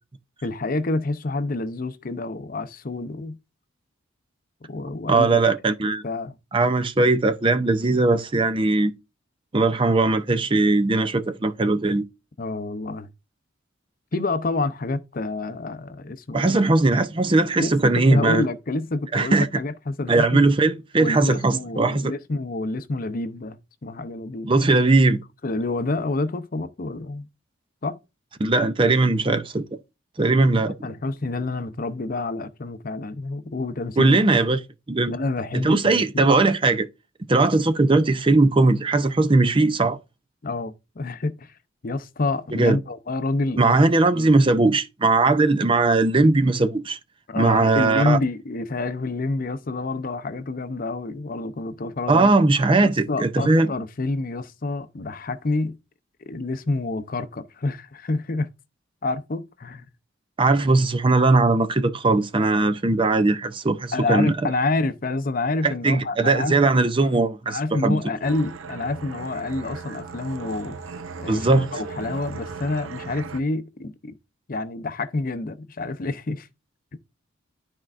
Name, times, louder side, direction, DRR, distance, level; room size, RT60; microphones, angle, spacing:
voice 1, 0.4-3.4 4.7-5.5 6.0-6.4 12.4-13.1 14.1-16.6 17.6-20.4 20.9-24.7 25.4-27.3 27.8-28.0 30.8-34.2 35.1-36.4 40.4-41.5 41.8-43.8 44.1-44.3 47.3-52.3 52.8-55.8 56.3-58.5 59.0-59.8 63.9-67.1 67.5-70.7 71.2-74.2 74.5-76.5 76.9-77.0, left 2 dB, 45° left, 0.6 m, -28 dB
voice 2, 5.1-6.0 6.5-8.9 9.5-12.0 16.3-18.4 19.1-19.5 20.1-22.1 24.5-25.2 28.4-29.6 30.2-30.8 34.0-34.6 34.9-35.1 35.5-36.9 37.3-40.0 42.5-42.8 43.6-47.0 47.4-48.2 52.1-53.7 60.4-64.3 65.6-67.6 67.8-68.0 71.3-71.7, right 3 dB, 25° right, 0.5 m, -19 dB
sound 1, 68.2-73.4, right 4 dB, 90° right, 0.6 m, -37 dB
12.0 x 4.5 x 2.5 m
head